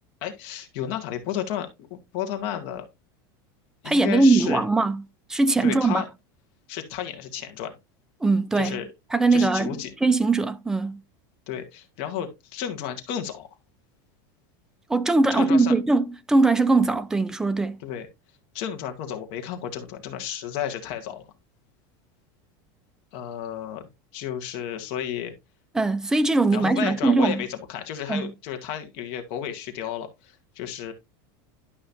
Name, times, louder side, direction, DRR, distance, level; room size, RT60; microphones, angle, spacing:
voice 1, 0.2-2.9 3.8-4.6 5.6-6.1 6.7-7.7 8.6-8.9 9.3-9.9 11.5-13.5 15.3-15.7 17.8-18.1 18.5-21.2 23.1-23.9 24.1-25.3 26.5-30.9, left 10 dB, 45° left, 1.8 m, -32 dB
voice 2, 3.8-5.0 5.3-6.0 8.2-8.8 9.1-11.0 14.9-17.8 25.7-27.4 28.1-28.3, right 3 dB, 5° right, 0.4 m, -21 dB
11.5 x 5.5 x 2.7 m
supercardioid pair, 170°, 12 cm